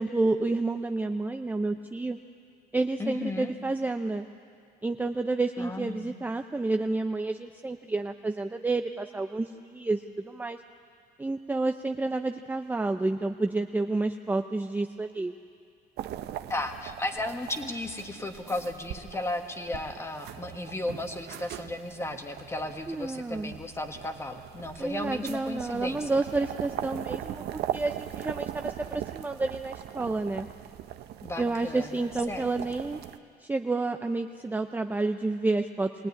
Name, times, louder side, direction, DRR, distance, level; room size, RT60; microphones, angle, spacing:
voice 1, 0.0-2.2 2.7-4.3 4.8-10.6 11.2-15.3 22.9-23.5 24.8-30.5 31.4-33.0 33.4-36.1, right 3 dB, 10° right, 6 dB, 0.6 m, -30 dB
voice 2, 3.0-3.5 5.6-6.1 16.5-26.2 31.2-32.5, left 2 dB, 15° left, 5 dB, 1.7 m, -35 dB
sound 1, 16.0-33.2, right 11 dB, 75° right, 0.8 m, -40 dB
21.5 x 18.0 x 9.7 m, 2.3 s
cardioid pair, 110°, 17 cm